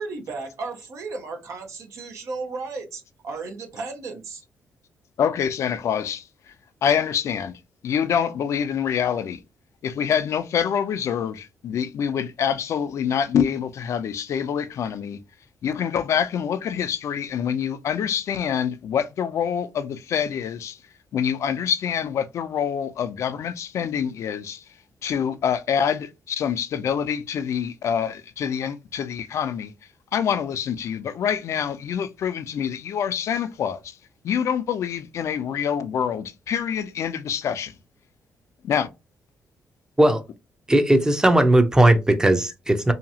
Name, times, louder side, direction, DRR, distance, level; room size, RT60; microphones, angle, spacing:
voice 1, 0.0-4.4, right 4 dB, 70° right, 0.8 m, -34 dB
voice 2, 5.2-6.5 6.8-9.4 9.8-15.2 15.6-20.8 21.1-24.6 25.0-29.7 30.1-34.0 34.2-37.7 38.6-38.9, left 8 dB, 65° left, 0.4 m, -26 dB
voice 3, 40.7-42.9, right 1 dB, 10° right, 0.6 m, -17 dB
2.8 x 2.4 x 2.7 m
cardioid pair, 80°, 5 cm